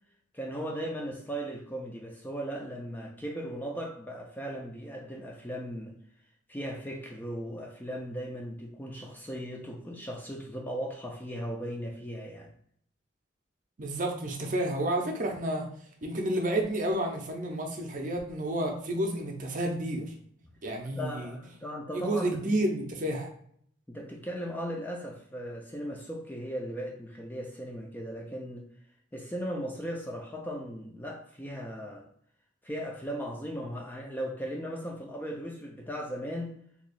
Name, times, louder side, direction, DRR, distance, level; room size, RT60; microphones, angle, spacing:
voice 1, 0.3-5.9 6.5-12.5 20.9-22.3 23.9-28.7 29.1-32.0 32.6-36.6, equal, 10° left, 0 dB, 0.3 m, -37 dB
voice 2, 13.8-15.7 16.0-20.1 20.6-21.4 21.9-23.3, right 1 dB, 40° right, 2 dB, 0.6 m, -30 dB
2.8 x 2.3 x 4.1 m, 0.63 s
head